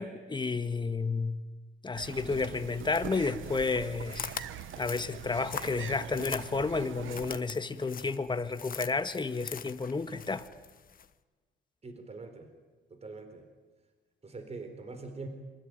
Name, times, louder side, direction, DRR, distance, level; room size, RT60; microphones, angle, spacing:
voice 1, 0.0-1.3 1.8-4.3 4.8-10.5, left 4 dB, 25° left, 1.8 m, -31 dB
sound 1, 1.9-7.4, right 11 dB, 80° right, 1.1 m, -43 dB
sound 2, 2.8-11.1, left 7 dB, 45° left, 1.3 m, -44 dB
voice 2, 11.8-12.5 12.9-13.5 14.2-15.3, right 3 dB, 30° right, 4.1 m, -43 dB
27.0 x 23.5 x 9.3 m
cardioid pair, 90°, 20 cm